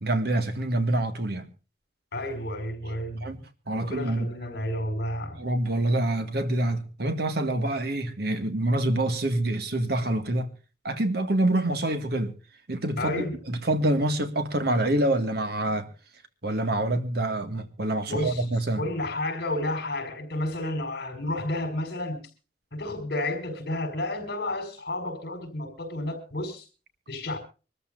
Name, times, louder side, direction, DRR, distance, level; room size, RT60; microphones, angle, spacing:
voice 1, 0.0-1.5 3.2-3.4 3.7-4.3 5.4-10.5 10.8-12.3 12.7-15.9 16.4-18.8, right 1 dB, 65° right, 1.9 m, -26 dB
voice 2, 2.1-3.3 3.7-5.4 13.0-13.4 18.1-18.5 18.7-22.3 22.7-26.6 27.1-27.4, left 1 dB, 60° left, 5.5 m, -31 dB
25.0 x 14.0 x 2.6 m
head